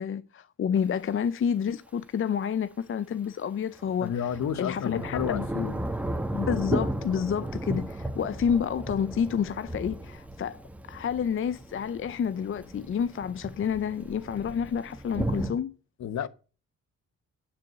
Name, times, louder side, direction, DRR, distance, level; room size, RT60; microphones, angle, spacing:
voice 1, 0.0-4.1 4.6-5.5 6.3-10.6 10.9-15.7, left 7 dB, 40° left, 0.6 m, -29 dB
Thunder / Rain, 0.8-0.9 3.8-15.5, right 1 dB, 5° right, 1.8 m, -35 dB
voice 2, 4.0-5.9 16.0-16.3, left 9 dB, 60° left, 1.0 m, -31 dB
9.9 x 6.1 x 6.8 m
cardioid pair, 80°, 31 cm